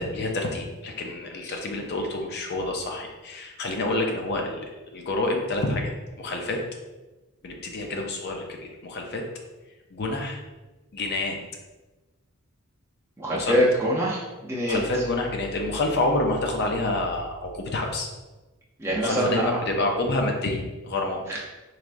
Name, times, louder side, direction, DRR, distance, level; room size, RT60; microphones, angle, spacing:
voice 1, 0.0-5.9 6.2-6.6 7.4-9.2 9.9-10.4 10.9-11.4 13.3-13.6 14.6-18.1 18.9-21.2, left 2 dB, 50° left, 2 dB, 0.5 m, -28 dB
voice 2, 13.2-14.8 18.8-19.6 21.3-21.4, equal, 10° right, -5 dB, 0.5 m, -24 dB
3.5 x 3.3 x 2.5 m, 1.2 s
head